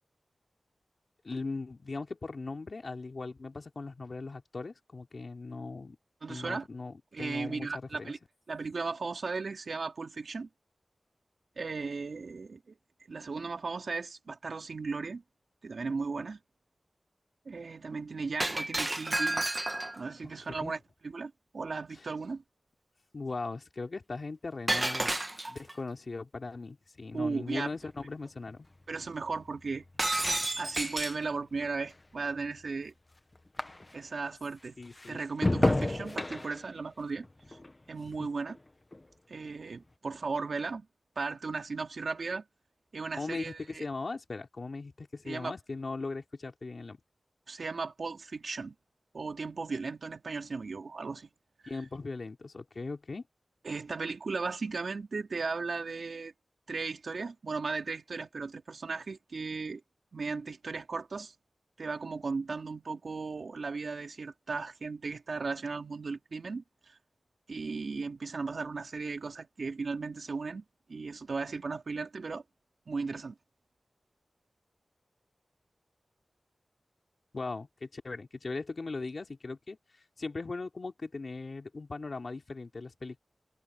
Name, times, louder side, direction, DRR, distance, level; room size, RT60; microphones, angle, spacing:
voice 1, 1.2-6.0 6.3-8.1 20.4-20.7 22.0-22.1 23.1-25.2 25.5-28.7 34.8-35.6 38.2-38.3 43.1-47.0 51.7-53.2 77.3-79.8 80.2-83.2, left 3 dB, 60° left, 2.9 m, -39 dB
voice 2, 6.2-6.7 7.1-8.2 8.5-10.5 11.6-12.8 13.1-15.2 15.6-16.4 17.5-19.5 20.0-22.4 27.1-27.7 28.9-29.8 30.6-32.9 33.9-34.8 35.1-37.6 37.9-38.6 39.3-40.9 41.2-42.4 42.9-43.9 45.2-45.5 47.5-48.8 49.1-51.3 53.6-56.3 56.7-59.8 60.1-61.3 61.8-67.0 67.5-70.6 70.9-72.4 72.9-73.3, right 4 dB, 75° right, 3.6 m, -36 dB
Shatter, 18.4-20.1 24.7-25.7 30.0-31.3, right 1 dB, 25° right, 1.3 m, -31 dB
sound 1, 27.5-34.2 34.6-39.1 39.4-39.9, left 2 dB, 30° left, 1.0 m, -35 dB
wide cardioid pair, 85°, 0 cm